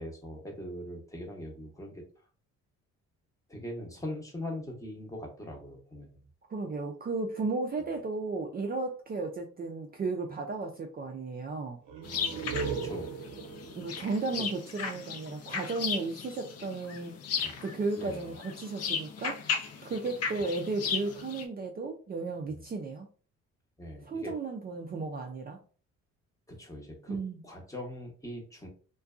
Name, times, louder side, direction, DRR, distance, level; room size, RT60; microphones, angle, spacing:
voice 1, 0.0-2.0 3.5-6.1 12.6-13.1 17.4-17.6 17.9-18.2 22.5-22.6 23.8-24.3 26.5-27.2 27.4-28.7, left 1 dB, 10° left, 0 dB, 0.8 m, -41 dB
voice 2, 6.5-11.8 13.7-17.2 17.6-19.5 19.8-23.1 24.0-25.6 27.1-27.4, right 3 dB, 30° right, 1 dB, 0.4 m, -34 dB
sound 1, 11.8-15.4, right 5 dB, 80° right, 0.6 m, -38 dB
sound 2, 12.0-21.5, left 6 dB, 55° left, 0.5 m, -36 dB
2.5 x 2.2 x 2.3 m, 0.40 s
cardioid pair, 90°, 30 cm